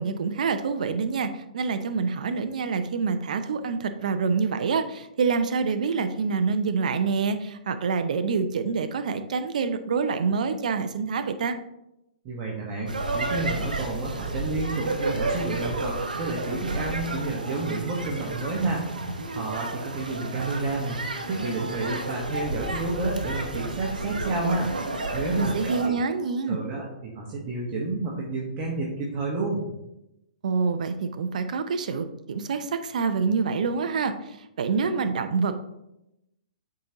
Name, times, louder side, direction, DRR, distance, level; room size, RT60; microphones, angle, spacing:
voice 1, 0.0-11.6 25.4-26.6 30.4-35.6, right 5 dB, 65° right, 9 dB, 0.6 m, -26 dB
voice 2, 12.2-18.8 19.3-21.0 21.3-24.7 25.1-25.9 26.5-29.6, right 2 dB, 35° right, -3 dB, 1.2 m, -30 dB
sound 1, 12.9-25.9, right 2 dB, 85° right, 0.9 m, -31 dB
8.6 x 3.8 x 2.9 m, 0.87 s
figure-of-eight pair, 120°, 4 cm